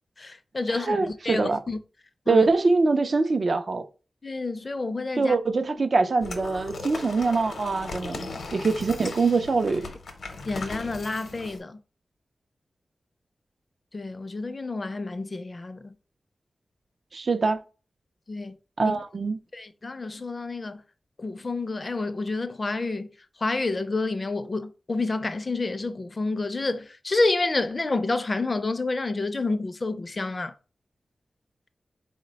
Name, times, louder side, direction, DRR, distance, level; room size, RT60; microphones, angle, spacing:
voice 1, 0.2-1.8 2.3-2.5 4.2-5.4 8.3-8.4 10.5-11.8 13.9-15.9 18.3-18.6 18.8-19.0 19.5-20.8 21.2-23.1 23.4-30.5, left 3 dB, 45° left, 0.4 m, -29 dB
voice 2, 0.7-1.6 2.3-3.9 5.2-9.9 17.1-17.6 18.8-19.4, right 3 dB, 60° right, 0.4 m, -24 dB
sound 1, 6.2-11.6, left 3 dB, 85° left, 0.7 m, -38 dB
3.8 x 2.1 x 3.9 m
wide cardioid pair, 70°, 0 cm